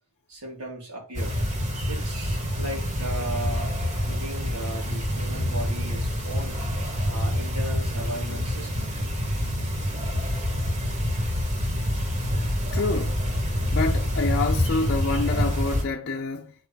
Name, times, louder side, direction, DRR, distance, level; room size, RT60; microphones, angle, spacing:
voice 1, 0.3-1.4 1.9-6.6 7.1-9.0, right 1 dB, 90° right, 3.4 m, -36 dB
sound 1, 1.1-15.8, left 1 dB, 35° right, 1.5 m, -27 dB
voice 2, 12.7-13.2 13.7-16.5, left 3 dB, 50° left, 0.6 m, -27 dB
8.6 x 4.4 x 3.6 m
head